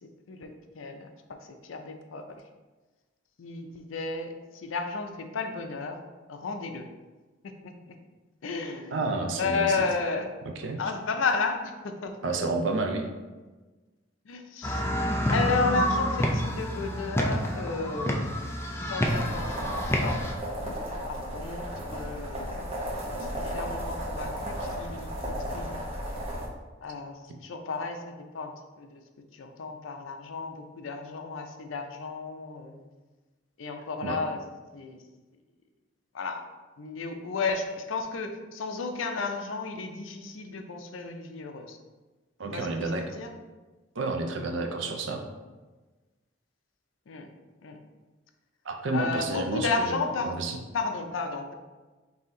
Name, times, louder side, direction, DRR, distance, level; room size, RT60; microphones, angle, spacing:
voice 1, 0.0-1.1 1.4-2.4 3.4-6.0 6.3-6.9 7.6-8.0 8.4-10.3 10.8-12.1 14.3-14.9 15.3-18.3 18.8-20.3 21.0-21.6 21.9-22.7 23.1-25.8 26.8-29.0 29.3-32.8 33.6-34.4 34.7-35.0 36.1-36.5 36.8-41.8 42.5-43.3 47.1-47.3 47.6-47.8 48.9-50.3 50.7-51.5, left 4 dB, 80° left, 6 dB, 0.5 m, -33 dB
voice 2, 8.9-9.8 10.6-10.8 12.2-13.0 34.0-34.2 42.4-43.0 44.0-45.2 48.6-50.6, right 3 dB, 70° right, 4 dB, 0.5 m, -30 dB
sound 1, 14.6-20.3, equal, 15° left, 0.3 m, -28 dB
sound 2, 19.1-26.5, equal, 30° right, 0.9 m, -34 dB
4.1 x 2.7 x 3.7 m, 1.2 s
head